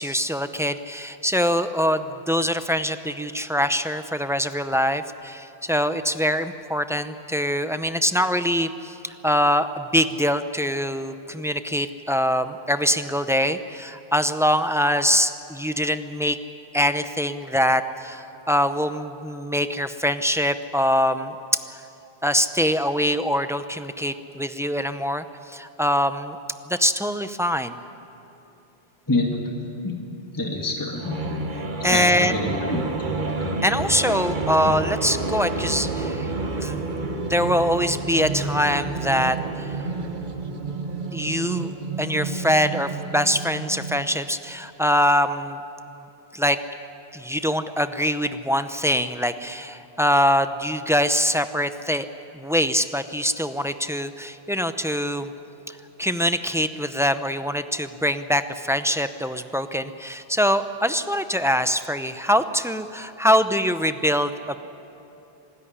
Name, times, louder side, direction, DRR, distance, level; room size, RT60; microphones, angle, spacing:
voice 1, 0.0-16.4 16.7-21.3 21.7-21.8 22.2-26.4 26.7-27.8 31.8-32.4 33.6-36.9 37.2-39.8 41.1-45.6 46.3-46.6 47.1-52.1 52.3-55.3 55.7-64.6, equal, 5° right, 10 dB, 0.5 m, -23 dB
voice 2, 30.3-31.4 31.9-33.1 33.4-33.6, left 2 dB, 20° left, 1 dB, 1.8 m, -26 dB
sound 1, 31.0-44.2, right 3 dB, 50° right, 1.4 m, -30 dB
25.5 x 13.5 x 10.0 m, 2.9 s
omnidirectional pair, 1.0 m